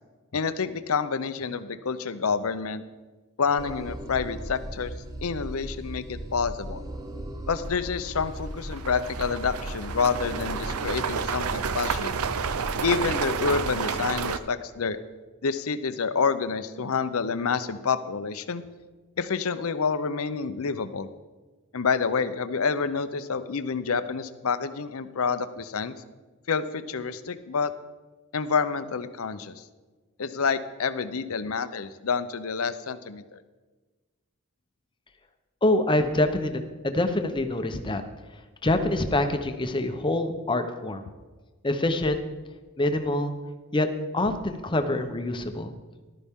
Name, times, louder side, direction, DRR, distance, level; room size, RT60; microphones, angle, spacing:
voice 1, 0.3-2.8 3.4-4.9 5.2-6.8 7.5-12.1 12.8-15.0 15.4-18.6 19.2-21.1 21.7-25.9 26.5-27.7 28.3-29.6 30.2-33.4, left 5 dB, 65° left, 12 dB, 0.6 m, -28 dB
sound 1, 3.6-12.7, right 1 dB, 15° right, 0.9 m, -37 dB
sound 2, 7.7-7.8 8.3-14.4, right 6 dB, 75° right, 0.6 m, -30 dB
voice 2, 35.6-38.0 38.6-41.0 41.6-42.2 42.8-43.3 43.7-43.9 44.1-45.7, left 1 dB, 20° left, 7 dB, 0.8 m, -25 dB
14.0 x 12.0 x 3.7 m, 1.3 s
head